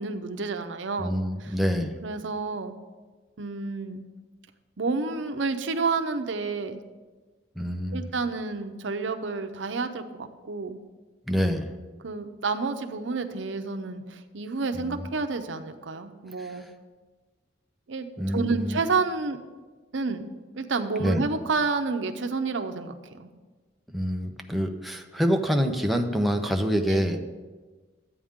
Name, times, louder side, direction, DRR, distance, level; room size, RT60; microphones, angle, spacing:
voice 1, 0.0-1.1 1.4-1.6 2.0-2.7 3.4-4.0 4.8-6.8 7.9-10.8 12.0-16.7 17.9-19.4 19.9-23.3 26.9-27.2, right 4 dB, 80° right, 7 dB, 0.7 m, -30 dB
voice 2, 1.0-1.9 7.6-8.0 11.3-11.7 14.7-15.1 16.4-16.6 18.2-18.8 21.0-21.2 23.9-27.2, equal, ahead, 3 dB, 0.7 m, -26 dB
13.0 x 8.6 x 3.7 m, 1.3 s
head